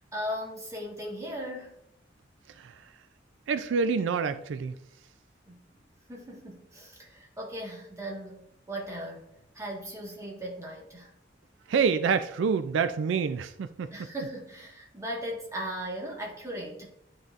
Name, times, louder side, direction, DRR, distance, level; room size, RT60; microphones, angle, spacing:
voice 1, 0.1-1.8 5.5-5.6 6.1-9.2 9.5-11.1 13.9-16.9, equal, 15° right, -3 dB, 1.5 m, -38 dB
voice 2, 3.5-4.7 11.7-13.9, right 5 dB, 80° right, 11 dB, 0.3 m, -27 dB
11.0 x 4.0 x 2.5 m, 0.78 s
head